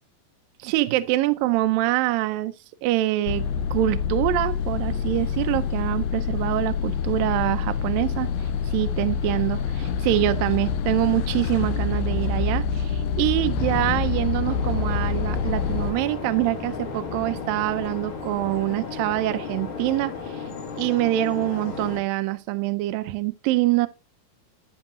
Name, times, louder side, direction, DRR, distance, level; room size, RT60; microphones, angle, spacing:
voice 1, 0.6-2.5 2.8-8.3 8.7-20.4 20.8-23.9, right 16 dB, 80° right, 2.3 m, -25 dB
sound 1, 3.3-15.9, left 6 dB, 90° left, 2.6 m, -26 dB
sound 2, 13.5-20.3, left 6 dB, 70° left, 2.1 m, -38 dB
sound 3, 14.4-22.0, left 5 dB, 45° left, 2.2 m, -35 dB
12.5 x 9.2 x 2.6 m
omnidirectional pair, 4.2 m